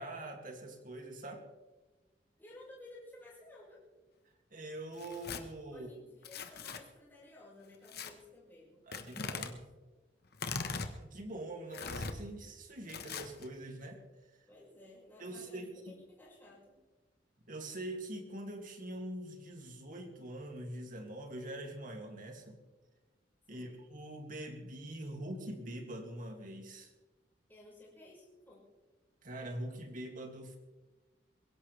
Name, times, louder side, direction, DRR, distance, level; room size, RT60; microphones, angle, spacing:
voice 1, 0.0-1.4 4.5-5.9 8.9-9.6 11.0-14.0 15.2-15.9 17.5-22.6 23.5-26.9 29.2-30.6, right 1 dB, 50° right, 3 dB, 2.5 m, -44 dB
voice 2, 2.4-3.8 5.7-8.9 14.5-16.8 23.5-23.7 27.5-28.6, left 2 dB, 10° left, -6 dB, 5.6 m, -55 dB
Tearing, 4.9-5.4 6.2-6.8 7.9-8.1 8.9-9.5 10.3-10.9 11.7-12.1 12.9-13.5, left 4 dB, 60° left, 1.3 m, -40 dB
22.0 x 17.0 x 3.4 m, 1.2 s
head